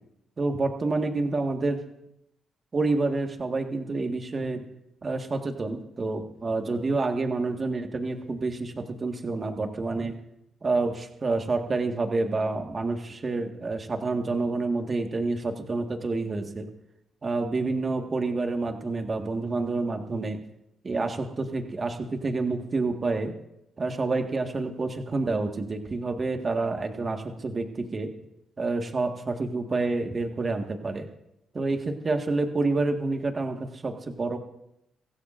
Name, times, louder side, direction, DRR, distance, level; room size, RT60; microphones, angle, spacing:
voice 1, 0.4-1.8 2.7-4.7 5.0-10.1 10.6-16.7 17.2-20.4 20.8-23.3 23.8-28.1 28.6-31.1 31.5-34.4, right 3 dB, 35° right, 4 dB, 1.7 m, -28 dB
24.5 x 14.5 x 2.6 m, 0.82 s
cardioid pair, 90°, 0 cm